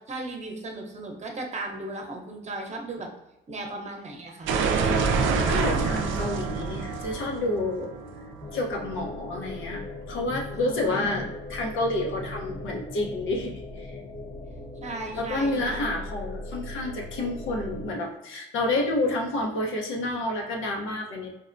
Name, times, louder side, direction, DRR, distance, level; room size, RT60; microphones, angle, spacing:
voice 1, 0.1-3.1 3.5-4.6 10.5-11.2 14.8-15.9, right 2 dB, 35° right, 2 dB, 0.8 m, -36 dB
sound 1, 4.5-9.2, right 4 dB, 80° right, 0.4 m, -26 dB
voice 2, 5.5-7.9 8.5-14.0 15.2-21.3, left 2 dB, 80° left, 0 dB, 0.8 m, -29 dB
sound 2, 8.4-17.9, left 2 dB, 35° left, 0.7 m, -39 dB
4.5 x 2.1 x 2.5 m, 0.88 s
cardioid pair, 90°, 20 cm